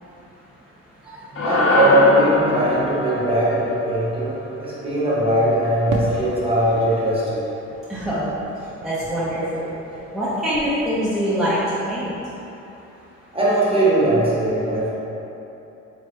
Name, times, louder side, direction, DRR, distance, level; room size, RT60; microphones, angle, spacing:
voice 1, 1.3-4.3 4.6-7.4 13.3-14.9, right 1 dB, 20° right, -8 dB, 1.0 m, -19 dB
sound 1, 1.4-5.8, left 2 dB, 45° left, 0.6 m, -24 dB
Fireworks, 5.9-10.3 10.5-11.3, right 3 dB, 80° right, 0.4 m, -37 dB
voice 2, 7.9-8.2 8.8-9.7 10.1-11.6 11.9-12.1, equal, ahead, -12 dB, 0.7 m, -24 dB
3.3 x 2.9 x 3.3 m, 3.0 s
cardioid pair, 90°, 30 cm